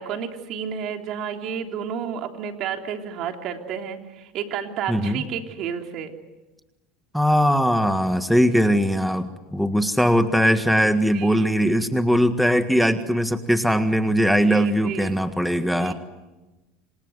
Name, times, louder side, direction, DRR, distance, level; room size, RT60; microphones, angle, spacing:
voice 1, 0.0-6.1 11.0-11.9 14.2-15.2 15.7-15.9, right 8 dB, 55° right, 4 dB, 3.4 m, -31 dB
voice 2, 4.9-5.2 7.1-15.9, equal, ahead, 8 dB, 1.7 m, -20 dB
28.0 x 26.5 x 8.1 m, 1.1 s
supercardioid pair, 105°, 0 cm